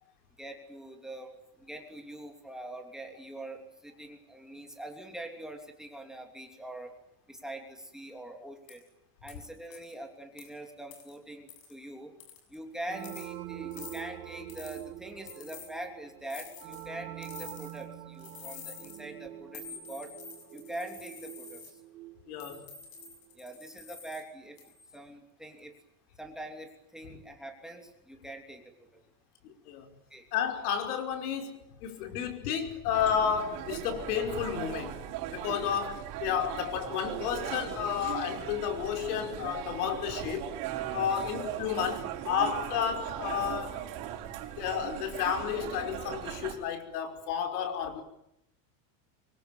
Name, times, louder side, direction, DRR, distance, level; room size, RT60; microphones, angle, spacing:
voice 1, 0.4-7.0 7.3-8.9 9.2-12.1 12.5-20.1 20.5-21.8 23.3-24.6 24.9-25.7 26.2-29.0 30.1-30.3 41.1-41.3, right 1 dB, ahead, 3.0 m, -44 dB
sound 1, 8.7-8.8 9.3-9.4 9.7-9.9 10.4-10.5 10.9-11.1 11.5-11.7 12.2-12.5 13.0-13.3 13.7-14.0 14.5-14.8 15.3-15.7 16.3-16.9 17.2-17.8 18.2-19.0 19.5-21.7 22.4-24.2 24.6-24.9, left 7 dB, 65° left, 7.1 m, -48 dB
sound 2, 12.9-23.3, right 15 dB, 75° right, 3.0 m, -45 dB
voice 2, 22.3-22.7 27.1-27.2 29.4-29.9 30.3-35.0 35.3-40.5 40.9-43.9 44.6-48.0, left 8 dB, 90° left, 5.4 m, -32 dB
sound 3, 32.9-46.5, right 11 dB, 50° right, 5.8 m, -38 dB
25.5 x 24.0 x 9.1 m
cardioid pair, 175°, 44 cm